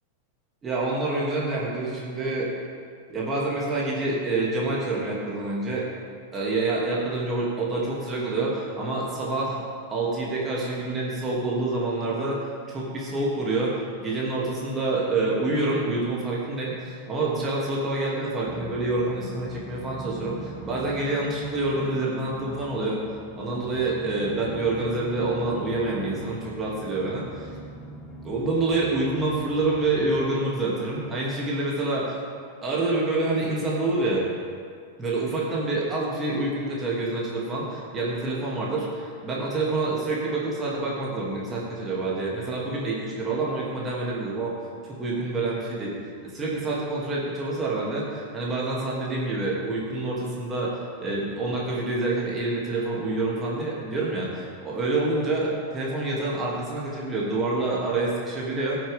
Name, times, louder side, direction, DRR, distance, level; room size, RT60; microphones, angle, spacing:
voice 1, 0.6-2.5 3.1-5.9 6.3-9.6 9.9-12.4 12.7-23.0 23.4-27.6 28.2-32.1 32.6-34.2 35.0-44.6 44.8-45.9 46.2-58.8, right 2 dB, 20° right, -5 dB, 2.8 m, -27 dB
sound 1, 18.4-30.2, right 2 dB, ahead, 1.1 m, -41 dB
19.5 x 7.5 x 3.7 m, 2.2 s
figure-of-eight pair, 90°, 0 cm